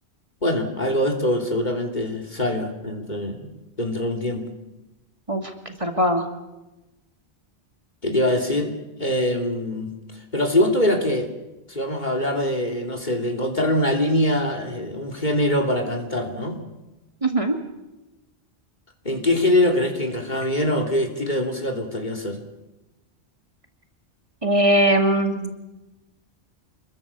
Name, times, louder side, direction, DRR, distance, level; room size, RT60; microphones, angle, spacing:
voice 1, 0.4-3.5 3.8-4.5 8.0-10.0 10.3-11.3 11.7-16.6 19.0-22.4, left 1 dB, 45° left, 3 dB, 3.1 m, -23 dB
voice 2, 5.8-6.3 17.2-17.6 24.4-25.6, right 1 dB, 30° right, 4 dB, 2.5 m, -20 dB
26.5 x 22.0 x 7.0 m, 1.0 s
omnidirectional pair, 1.1 m